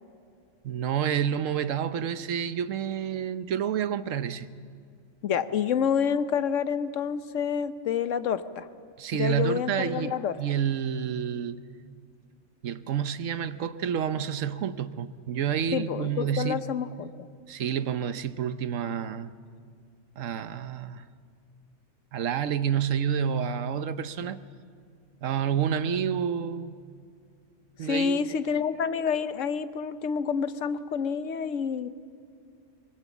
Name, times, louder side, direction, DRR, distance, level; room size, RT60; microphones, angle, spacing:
voice 1, 0.6-4.5 9.0-11.6 12.6-16.6 17.5-19.3 20.2-21.0 22.1-24.4 25.2-26.8 27.8-28.3, right 8 dB, 85° right, 1.2 m, -29 dB
voice 2, 5.2-8.7 9.2-10.3 15.7-17.1 27.8-31.9, left 7 dB, 75° left, 1.2 m, -28 dB
23.5 x 23.0 x 7.3 m
omnidirectional pair, 1.3 m